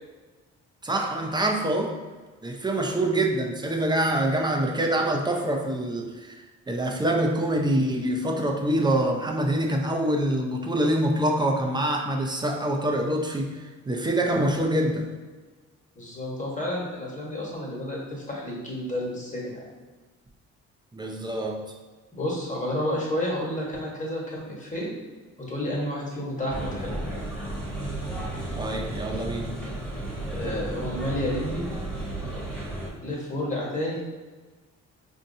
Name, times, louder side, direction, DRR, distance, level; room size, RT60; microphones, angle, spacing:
voice 1, 0.8-2.0 2.4-13.6 13.9-15.1 20.9-21.7 28.6-29.5, right 1 dB, 15° right, 2 dB, 0.5 m, -25 dB
voice 2, 15.9-19.6 22.1-24.9 25.4-26.9 30.3-31.6 33.0-34.0, left 1 dB, 25° left, -4 dB, 1.3 m, -30 dB
sound 1, 26.5-32.9, right 1 dB, 5° left, 1.1 m, -33 dB
4.3 x 2.6 x 2.7 m, 1.3 s
cardioid pair, 90°, 30 cm